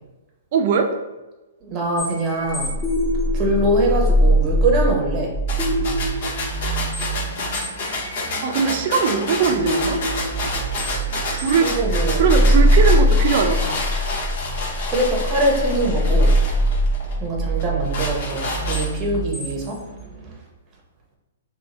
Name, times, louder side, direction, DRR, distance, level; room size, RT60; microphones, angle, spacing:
voice 1, 0.5-0.9 8.4-10.0 11.3-11.7 12.2-13.7, right 6 dB, 50° right, 5 dB, 0.5 m, -20 dB
voice 2, 1.6-2.7 3.3-5.3 11.6-12.2 14.9-16.4 17.2-19.9 20.3-20.4, right 1 dB, 25° right, 0 dB, 0.9 m, -23 dB
sound 1, 2.0-20.3, equal, 20° left, 1.2 m, -22 dB
sound 2, 5.5-17.2 17.6-19.2, left 2 dB, 55° left, 1.0 m, -29 dB
2.8 x 2.7 x 4.1 m, 1.1 s
hypercardioid pair, 150°, 0 cm